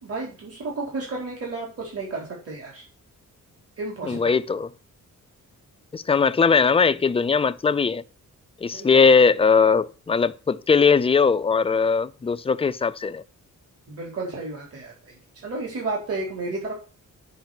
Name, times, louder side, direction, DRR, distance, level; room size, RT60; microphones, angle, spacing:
voice 1, 0.0-2.8 3.8-4.3 8.6-9.0 13.9-16.7, right 3 dB, 45° right, 4.2 m, -32 dB
voice 2, 4.0-4.7 5.9-8.0 8.6-13.2, left 5 dB, 20° left, 0.4 m, -20 dB
9.4 x 5.4 x 7.4 m
wide cardioid pair, 160°, 32 cm